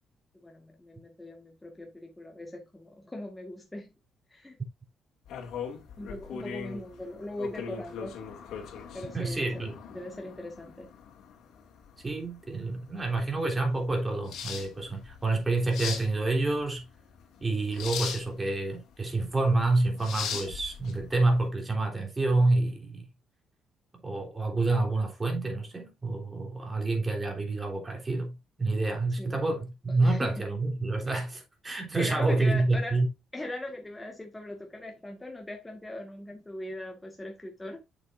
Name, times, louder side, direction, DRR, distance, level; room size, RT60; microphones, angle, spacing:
voice 1, 0.4-3.9 4.3-4.6 6.0-8.2 8.9-10.9 29.2-29.4 30.0-30.5 32.0-33.0 33.3-37.8, left 1 dB, 15° left, 1.8 m, -40 dB
sound 1, 5.2-21.4, left 7 dB, 80° left, 2.3 m, -40 dB
voice 2, 9.1-9.8 12.0-16.8 17.4-23.1 24.0-33.1, right 2 dB, 25° right, 3.7 m, -28 dB
8.0 x 7.1 x 2.6 m
cardioid pair, 90°, 0 cm